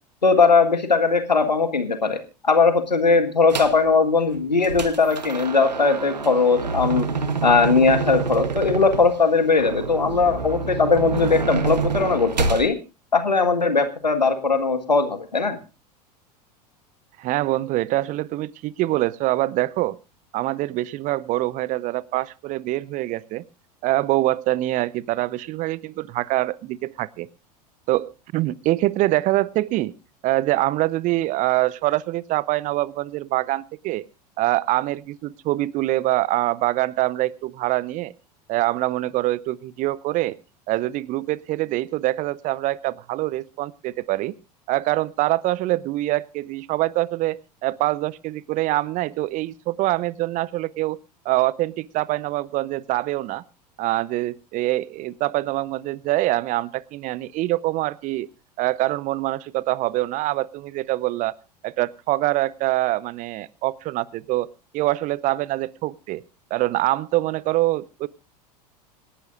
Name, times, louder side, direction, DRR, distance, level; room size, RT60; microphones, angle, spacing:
voice 1, 0.2-2.2 2.4-7.1 7.4-12.8 13.1-15.6, left 4 dB, 85° left, 9 dB, 1.7 m, -19 dB
sound 1, 3.5-3.8 4.3-12.7, right 5 dB, 80° right, 1.2 m, -27 dB
voice 2, 17.2-20.0 20.3-23.4 23.8-27.3 27.9-29.9 30.2-34.0 34.4-38.1 38.5-40.4 40.7-44.3 44.7-51.0 51.2-53.4 53.8-58.3 58.6-61.3 61.6-64.5 64.7-66.2 66.5-68.1, right 17 dB, 40° right, 23 dB, 0.6 m, -24 dB
27.0 x 11.0 x 2.5 m, 0.29 s
figure-of-eight pair, 80°, 21 cm